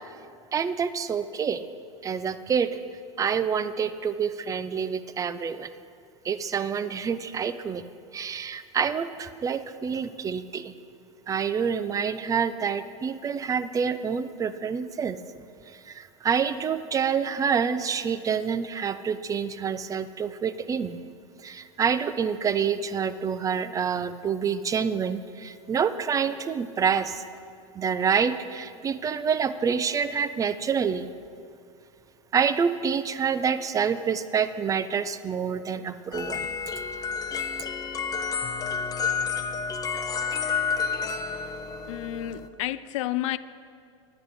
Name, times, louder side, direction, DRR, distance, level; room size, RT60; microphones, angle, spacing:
voice 1, 0.5-1.6 2.0-2.7 3.2-5.7 6.2-7.8 8.1-10.7 11.3-15.2 15.7-21.0 21.4-27.2 27.7-31.1 32.3-36.5, right 6 dB, 20° right, 13 dB, 0.5 m, -27 dB
sound 1, 36.1-42.5, left 6 dB, 20° left, 0.7 m, -30 dB
voice 2, 41.9-43.4, left 14 dB, 75° left, 15 dB, 0.5 m, -30 dB
10.0 x 9.0 x 6.7 m, 2.4 s
supercardioid pair, 120°, 17 cm